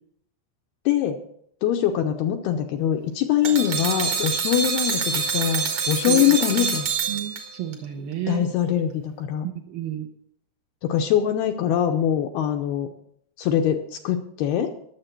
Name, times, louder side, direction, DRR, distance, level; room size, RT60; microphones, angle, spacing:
voice 1, 0.9-1.2 1.6-6.9 8.3-9.5 10.8-12.9 13.4-14.7, left 10 dB, 75° left, 4 dB, 2.4 m, -23 dB
sound 1, 3.4-7.7, right 6 dB, 55° right, 2.0 m, -26 dB
voice 2, 6.1-6.7 7.1-8.5 9.4-10.1, right 9 dB, 75° right, 3 dB, 2.2 m, -32 dB
21.0 x 7.4 x 4.5 m, 0.68 s
omnidirectional pair, 5.2 m